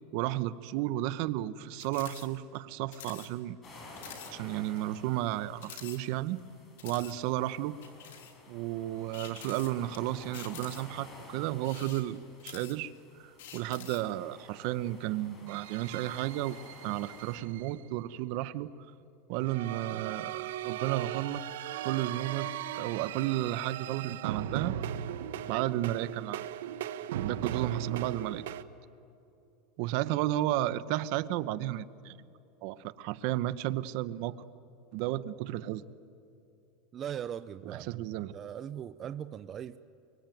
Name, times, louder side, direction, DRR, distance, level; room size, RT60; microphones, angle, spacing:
voice 1, 0.1-3.6 4.3-6.4 6.8-7.8 8.5-12.9 13.2-16.6 16.8-18.7 19.3-21.4 21.8-22.5 22.7-24.8 25.5-26.4 27.2-28.4 29.8-32.2 32.6-34.4 34.9-35.9 37.7-38.4, right 14 dB, 60° right, 14 dB, 1.0 m, -33 dB
sound 1, 1.8-2.3 2.5-2.6 2.9-3.3 3.6-3.7 4.0-4.3 4.8-4.9 5.6-6.4 6.8-7.2 7.8-8.4 9.1-10.0 10.3-11.0 11.6-13.0 13.4-14.1, left 8 dB, 80° left, 3.4 m, -47 dB
sound 2, 3.6-17.4, left 2 dB, 25° left, 6.1 m, -52 dB
sound 3, 15.5-17.7 19.4-28.6, right 10 dB, 85° right, 1.0 m, -38 dB
voice 2, 36.9-38.0 38.3-39.8, right 9 dB, 30° right, 12 dB, 0.5 m, -39 dB
24.5 x 24.0 x 9.3 m, 2.8 s
supercardioid pair, 135°, 0 cm